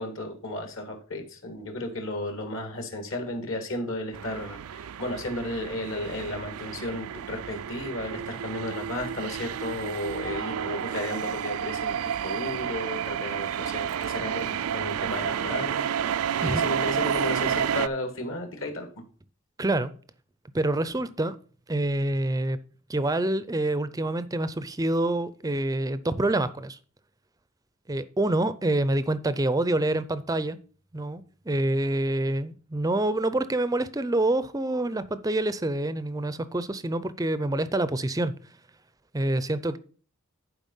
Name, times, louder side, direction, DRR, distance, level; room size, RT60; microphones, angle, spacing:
voice 1, 0.0-15.8 16.3-18.9, left 1 dB, 60° left, 5 dB, 2.0 m, -34 dB
sound 1, 4.1-17.9, right 8 dB, 75° right, 0.4 m, -30 dB
voice 2, 19.6-19.9 20.5-21.4 21.7-22.6 22.9-26.8 27.9-30.6 30.9-38.3 39.1-39.8, right 1 dB, 15° right, 15 dB, 0.5 m, -26 dB
11.0 x 4.8 x 5.4 m, 0.42 s
head